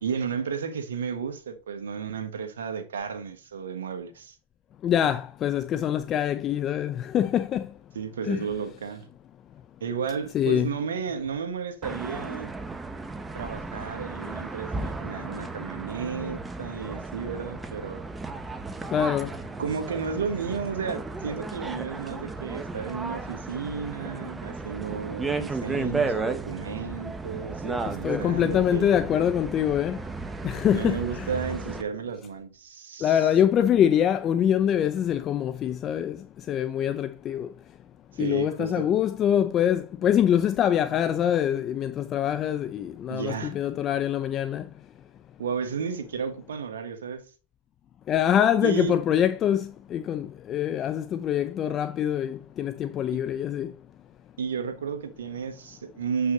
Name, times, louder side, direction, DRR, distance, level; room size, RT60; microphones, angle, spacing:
voice 1, 0.0-4.3 7.9-9.1 9.8-12.5 13.3-18.0 19.6-29.0 30.7-33.2 38.1-38.9 43.1-43.5 45.4-47.2 48.6-48.9 54.4-56.3, right 6 dB, 90° right, 1.4 m, -33 dB
voice 2, 4.8-7.7 8.2-8.5 10.3-10.7 18.9-19.3 27.9-30.0 30.4-31.3 33.0-36.2 36.5-37.5 38.2-44.7 48.1-53.7, left 9 dB, 40° left, 0.5 m, -24 dB
sound 1, 11.8-31.8, right 3 dB, 15° right, 1.0 m, -34 dB
8.1 x 5.5 x 3.8 m
hypercardioid pair, 100°, 0 cm